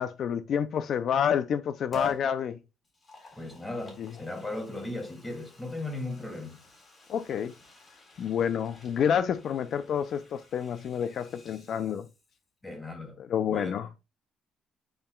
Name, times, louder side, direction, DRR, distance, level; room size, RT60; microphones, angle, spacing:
voice 1, 0.0-2.6 4.0-4.1 7.1-7.5 8.2-12.1 13.2-13.9, left 8 dB, 60° left, 0.4 m, -28 dB
Liquid, 1.9-2.3 2.8-12.5 12.8-12.9, left 3 dB, 30° left, 3.7 m, -47 dB
voice 2, 3.3-6.6 12.6-13.2 13.5-13.7, left 2 dB, 15° left, 2.5 m, -37 dB
8.9 x 5.4 x 2.3 m
cardioid pair, 125°, 0 cm